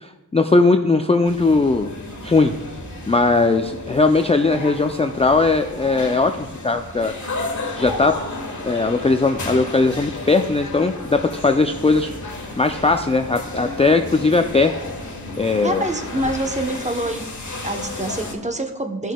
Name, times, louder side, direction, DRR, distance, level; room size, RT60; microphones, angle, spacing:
voice 1, 0.0-1.9 2.2-2.5 3.1-7.1 7.7-8.2 8.6-12.1 12.6-14.7 15.4-15.8, left 3 dB, 15° left, 6 dB, 0.4 m, -18 dB
sound 1, 1.2-18.3, left 2 dB, 50° left, 1.3 m, -33 dB
voice 2, 15.6-17.3 17.6-19.1, right 1 dB, 20° right, 4 dB, 0.8 m, -26 dB
13.5 x 6.1 x 2.2 m, 1.0 s
cardioid pair, 45°, 37 cm